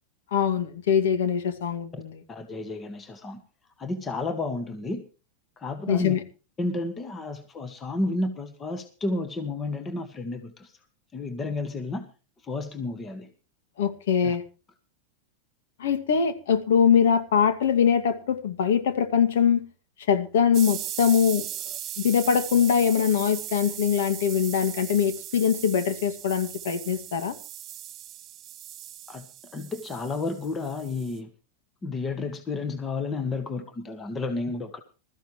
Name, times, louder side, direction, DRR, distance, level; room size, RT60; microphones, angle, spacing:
voice 1, 0.3-2.2 5.9-6.2 13.8-14.4 15.8-19.7 20.1-21.5 22.0-27.3, left 7 dB, 80° left, 10 dB, 2.2 m, -23 dB
voice 2, 2.3-3.4 3.8-5.0 5.6-6.2 6.6-10.7 11.1-12.1 12.4-13.3 14.2-14.4 29.1-29.3 29.5-31.3 31.8-34.8, left 3 dB, 20° left, 8 dB, 1.8 m, -31 dB
sound 1, 20.5-31.2, right 12 dB, 35° right, 1.9 m, -38 dB
20.5 x 14.0 x 3.2 m, 0.34 s
supercardioid pair, 130°, 0 cm